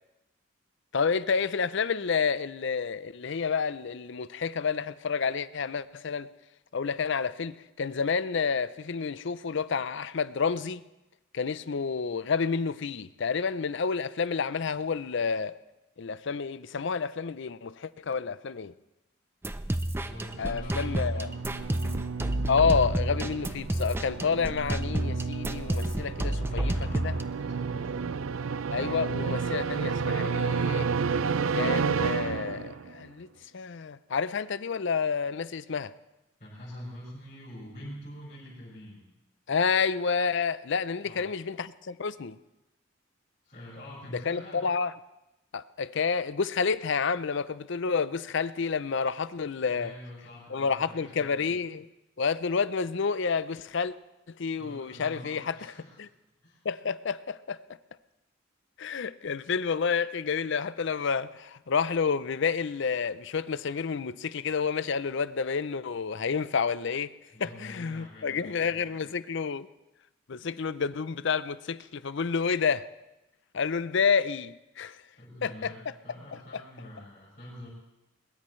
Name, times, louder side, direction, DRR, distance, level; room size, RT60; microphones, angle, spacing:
voice 1, 0.9-6.3 6.7-10.8 11.3-15.5 16.0-18.7 20.4-21.3 22.5-26.7 27.0-27.1 28.7-30.9 31.5-33.3 33.5-35.9 39.5-42.4 44.3-44.9 45.5-49.9 50.5-51.9 52.2-53.9 54.4-55.6 56.6-57.6 58.8-67.1 67.4-69.7 70.3-72.8 73.5-75.0 75.4-75.7, left 5 dB, 60° left, 0.5 m, -29 dB
sound 1, 19.4-27.2, right 1 dB, 10° right, 0.5 m, -30 dB
voice 2, 20.0-21.8 26.3-28.5 36.4-39.1 41.0-41.3 43.4-44.7 49.7-51.5 54.5-56.0 56.4-56.6 67.3-69.0 75.2-77.7, equal, 35° left, 5.4 m, -46 dB
sound 2, 20.4-33.0, right 5 dB, 75° right, 0.5 m, -31 dB
21.5 x 21.0 x 3.2 m
head